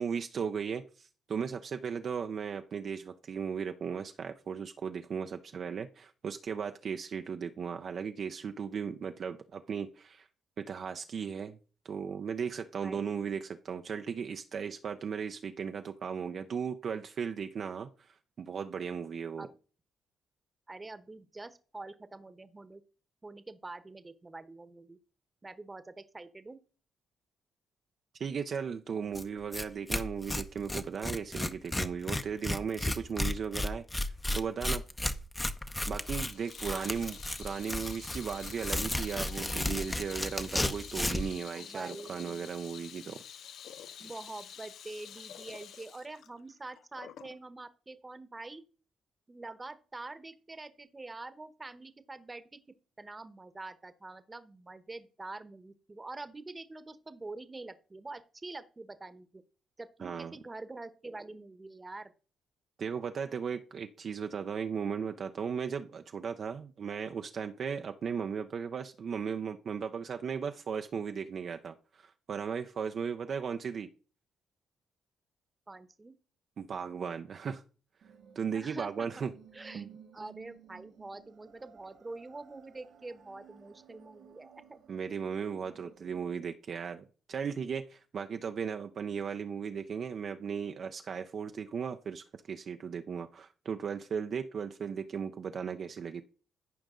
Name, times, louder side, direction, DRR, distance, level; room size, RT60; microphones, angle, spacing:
voice 1, 0.0-10.3 10.6-11.6 11.8-19.5 28.2-34.8 35.9-43.2 60.0-60.3 62.8-73.9 76.6-77.6 78.4-79.3 79.7-79.9 84.9-96.2, right 6 dB, 55° right, 6 dB, 0.6 m, -36 dB
voice 2, 12.8-13.3 19.4-19.6 20.7-22.8 23.2-25.0 25.4-26.6 36.7-36.9 41.5-42.6 44.0-48.6 49.3-52.6 53.0-59.4 59.8-62.1 75.7-76.1 78.5-79.1 79.5-79.8 80.1-84.8 85.8-86.2, right 2 dB, 20° right, 12 dB, 1.1 m, -45 dB
Tearing, 29.1-29.2 29.5-29.6 29.9-41.3, left 1 dB, 15° left, 0.8 m, -33 dB
Water tap faucet / Sink (filling or washing), 36.0-47.4, left 9 dB, 70° left, 0.5 m, -49 dB
sound 1, 78.0-86.0, right 8 dB, 70° right, 2.0 m, -57 dB
14.0 x 5.2 x 3.8 m, 0.37 s
cardioid pair, 90°, 0 cm